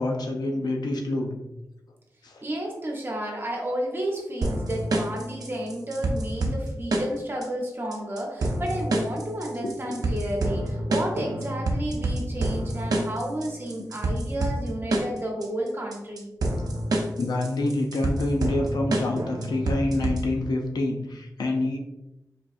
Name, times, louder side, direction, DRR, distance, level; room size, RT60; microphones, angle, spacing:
voice 1, 0.0-1.4 2.2-2.4 6.4-6.5 9.6-10.0 14.9-15.0 17.2-21.8, left 2 dB, 80° left, 2 dB, 0.6 m, -27 dB
voice 2, 2.4-16.3, right 1 dB, 35° right, -1 dB, 1.0 m, -32 dB
sound 1, 4.4-20.4, right 1 dB, 70° right, 0.6 m, -28 dB
4.1 x 3.1 x 2.5 m, 0.92 s
wide cardioid pair, 85°, 7 cm